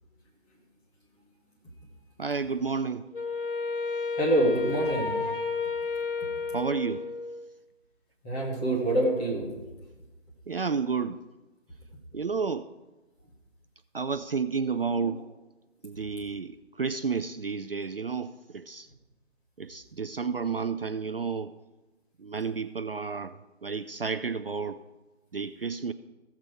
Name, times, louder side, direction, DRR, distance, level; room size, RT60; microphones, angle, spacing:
voice 1, 2.2-3.0 6.5-7.1 10.5-11.2 12.1-12.7 13.9-15.2 15.8-18.9 19.6-21.5 22.2-24.8 25.3-25.9, right 5 dB, 50° right, 0.5 m, -31 dB
Wind instrument woodwind instrument, 3.1-7.5, left 4 dB, 45° left, 1.1 m, -31 dB
voice 2, 4.2-5.1 8.2-9.5 15.0-15.1, right 1 dB, 5° left, 0.9 m, -25 dB
15.5 x 7.4 x 4.6 m
figure-of-eight pair, 150°, 36 cm